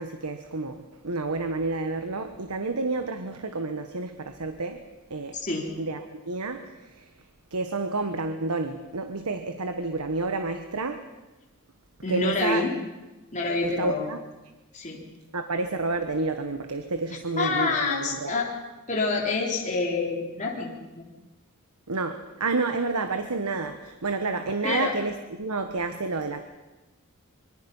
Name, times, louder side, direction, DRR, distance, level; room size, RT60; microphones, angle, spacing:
voice 1, 0.0-4.8 5.1-5.4 5.8-7.1 7.5-11.0 12.1-12.7 13.6-14.2 15.3-18.4 21.9-26.4, right 3 dB, 85° right, 7 dB, 1.3 m, -30 dB
voice 2, 12.0-12.7 13.3-14.1 14.7-15.0 17.4-18.5 18.9-21.1 24.6-24.9, left 3 dB, 35° left, -3 dB, 3.9 m, -27 dB
24.5 x 23.5 x 5.6 m, 1.1 s
head